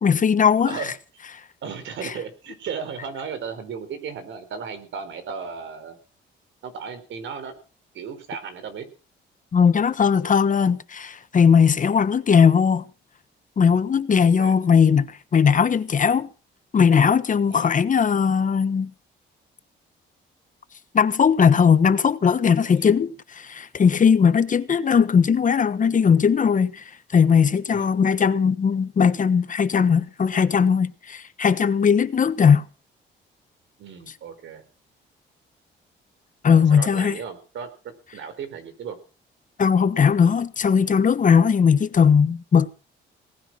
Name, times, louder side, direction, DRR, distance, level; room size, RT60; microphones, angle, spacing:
voice 1, 0.0-0.9 2.0-2.1 9.5-12.8 13.6-16.3 16.7-18.9 20.9-26.8 27.1-32.6 36.4-37.2 39.6-42.7, left 6 dB, 40° left, 1.2 m, -19 dB
voice 2, 1.6-6.0 6.6-7.5 7.9-8.9 14.2-14.5 17.5-17.7 27.7-27.9 33.8-34.6 36.5-37.7 38.1-39.0, right 6 dB, 75° right, 4.3 m, -35 dB
18.5 x 10.0 x 6.2 m
cardioid pair, 90°, 20 cm